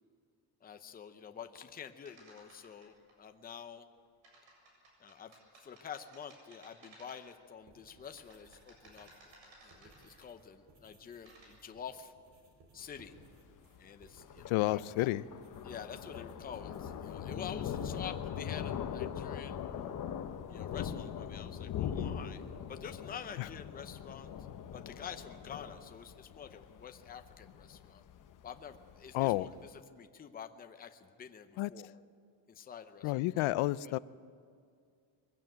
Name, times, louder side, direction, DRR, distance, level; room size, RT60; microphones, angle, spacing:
voice 1, 0.6-3.9 5.0-9.3 9.6-12.1 12.7-13.2 13.8-15.1 15.6-19.6 20.5-24.3 24.7-28.0 28.4-29.5 29.9-32.0 32.5-33.5 33.8-33.9, left 7 dB, 20° left, 7 dB, 0.7 m, -48 dB
sound 1, 2.0-3.1 4.2-7.4 7.9-10.4 11.0-11.5, right 2 dB, 75° right, 7.3 m, -59 dB
sound 2, 7.6-17.9, right 2 dB, 45° right, 3.9 m, -64 dB
Thunder, 12.8-29.7, left 8 dB, 40° left, 0.9 m, -41 dB
voice 2, 14.5-15.2 23.4-23.5 29.1-29.5 31.6-31.7 33.0-34.0, left 18 dB, 85° left, 18 dB, 0.6 m, -30 dB
22.0 x 15.5 x 9.0 m, 2.3 s
cardioid pair, 170°, 47 cm